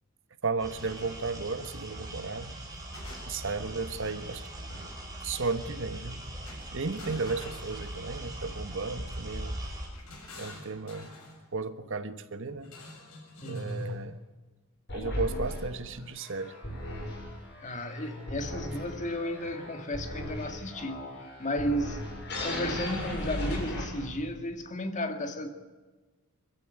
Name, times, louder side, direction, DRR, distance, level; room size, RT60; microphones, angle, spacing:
voice 1, 0.4-2.5 3.3-4.5 5.2-6.2 6.5-9.6 10.3-11.1 11.5-12.7 13.4-14.2 14.9-16.5, right 3 dB, 60° right, 1.3 m, -34 dB
sound 1, 0.6-9.9, right 1 dB, 15° right, 5.7 m, -41 dB
sound 2, 0.8-1.0 2.5-3.6 4.7-5.1 6.4-8.3 9.6-11.4 12.6-14.0, left 2 dB, 75° left, 7.5 m, -48 dB
voice 2, 13.4-13.8 17.6-21.0 21.4-22.0 22.4-25.5, equal, 35° left, 2.1 m, -33 dB
sound 3, 14.9-24.3, left 1 dB, 50° left, 6.9 m, -37 dB
22.0 x 15.0 x 9.4 m
head